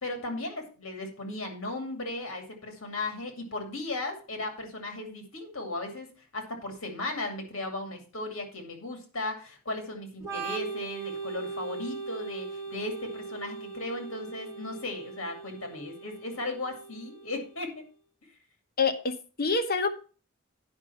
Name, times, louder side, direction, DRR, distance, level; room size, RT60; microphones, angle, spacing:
voice 1, 0.0-17.7, left 2 dB, 65° left, 4 dB, 2.3 m, -36 dB
Organ, 10.2-17.7, right 4 dB, 15° right, 2.7 m, -39 dB
voice 2, 18.8-19.9, left 4 dB, 45° left, 8 dB, 0.9 m, -27 dB
9.5 x 5.4 x 5.5 m, 0.37 s
head